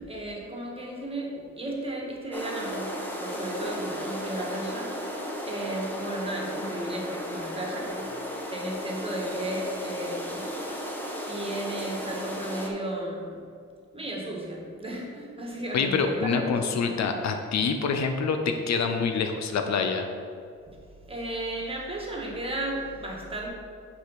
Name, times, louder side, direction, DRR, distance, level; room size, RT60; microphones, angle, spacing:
voice 1, 0.0-5.0 5.5-8.2 8.5-10.5 11.3-13.5 13.9-16.9 20.7-20.8 21.1-23.5, right 1 dB, 20° right, -1 dB, 1.8 m, -34 dB
sound 1, 2.3-12.7, equal, 5° left, 1.3 m, -35 dB
voice 2, 15.7-20.1, left 5 dB, 65° left, 5 dB, 0.8 m, -26 dB
6.5 x 5.1 x 5.8 m, 2.3 s
cardioid pair, 90°, 30 cm